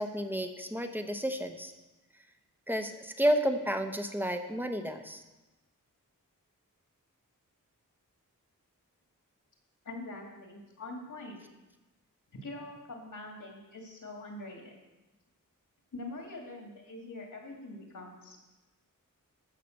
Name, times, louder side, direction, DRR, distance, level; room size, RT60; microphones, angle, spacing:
voice 1, 0.0-1.7 2.7-5.2, equal, 5° right, 6 dB, 0.9 m, -31 dB
voice 2, 9.8-11.4 12.4-14.8 15.9-18.4, left 2 dB, 70° left, 0 dB, 2.4 m, -44 dB
14.0 x 5.8 x 6.5 m, 1.1 s
wide cardioid pair, 105°, 33 cm